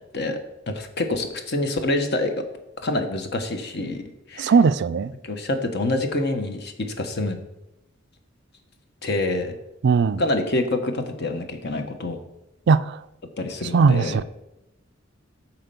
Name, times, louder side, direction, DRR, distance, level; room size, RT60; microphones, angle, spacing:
voice 1, 0.7-2.3 2.8-4.0 4.3-4.5 5.2-7.4 9.0-9.6 10.2-12.2 13.4-14.2, left 2 dB, 55° left, 1.1 m, -26 dB
voice 2, 4.4-5.1 9.8-10.2 12.7-13.0 13.7-14.2, right 5 dB, 60° right, 0.4 m, -18 dB
9.5 x 4.4 x 6.8 m
head